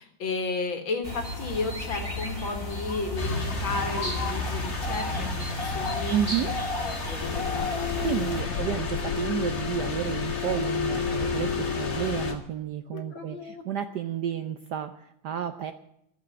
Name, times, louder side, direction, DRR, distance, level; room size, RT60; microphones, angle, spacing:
voice 1, 0.0-6.5 6.8-7.9 8.4-8.8 11.5-11.7 12.9-13.6, left 3 dB, 65° left, 5 dB, 2.3 m, -34 dB
sound 1, 1.0-8.4, left 2 dB, 15° left, 2.2 m, -33 dB
sound 2, 3.1-12.3, left 2 dB, 30° left, 2.1 m, -35 dB
voice 2, 6.1-6.5 8.0-15.7, right 9 dB, 70° right, 9 dB, 1.0 m, -31 dB
sound 3, 7.2-12.4, left 7 dB, 85° left, 1.8 m, -31 dB
13.5 x 7.3 x 9.8 m, 0.78 s
omnidirectional pair, 2.4 m